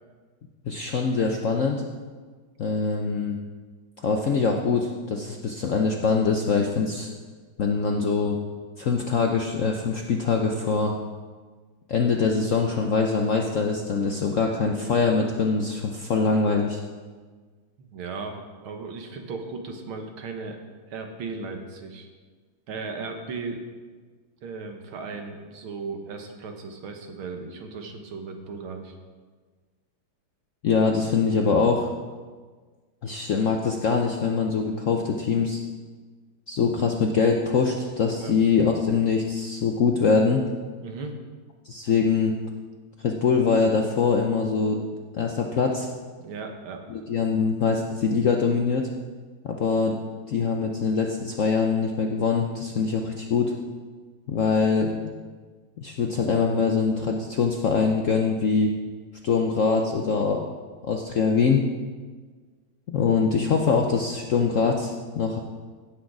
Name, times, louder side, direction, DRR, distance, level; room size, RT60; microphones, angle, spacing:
voice 1, 0.7-1.8 2.6-3.4 4.0-7.1 7.6-8.4 8.8-10.9 11.9-16.8 30.6-31.9 33.0-35.6 36.5-40.4 41.6-42.4 43.0-44.8 45.1-45.9 46.9-48.9 49.4-50.0 50.3-53.5 54.3-54.9 55.8-58.7 59.2-60.4 60.8-61.6 62.9-65.4, left 5 dB, 65° left, 2 dB, 0.8 m, -23 dB
voice 2, 17.8-20.6 20.9-22.1 22.7-23.6 24.4-28.9 38.2-38.3 40.8-41.2 46.2-46.8, right 4 dB, 85° right, 4 dB, 2.1 m, -36 dB
16.5 x 6.4 x 4.8 m, 1.5 s
omnidirectional pair, 2.2 m